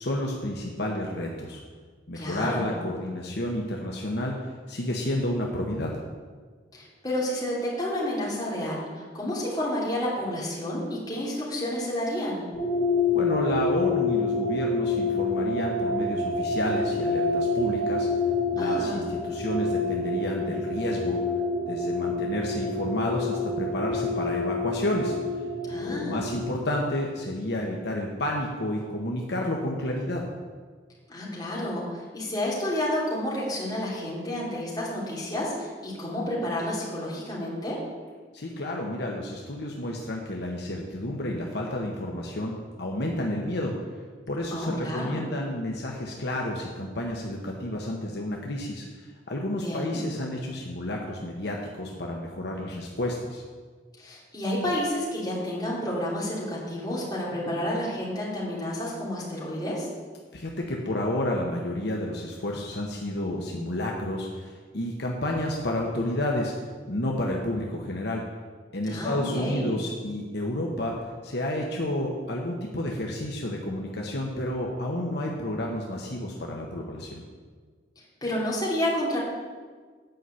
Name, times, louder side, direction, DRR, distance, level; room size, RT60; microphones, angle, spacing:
voice 1, 0.0-1.6 2.1-4.3 4.7-6.0 13.1-18.1 18.5-21.2 21.7-25.1 25.8-30.3 38.3-43.7 44.3-53.4 60.3-66.5 66.9-68.2 68.7-70.9 71.2-77.2, left 1 dB, 65° left, -1 dB, 1.1 m, -30 dB
voice 2, 2.1-2.8 6.7-12.4 18.6-19.0 25.7-26.3 31.1-37.8 44.5-45.3 49.6-50.0 54.0-59.9 68.9-69.8 78.2-79.2, left 1 dB, 20° left, -6 dB, 3.2 m, -30 dB
sound 1, 12.5-26.4, left 3 dB, 45° left, 3.3 m, -27 dB
9.2 x 5.6 x 7.8 m, 1.5 s
head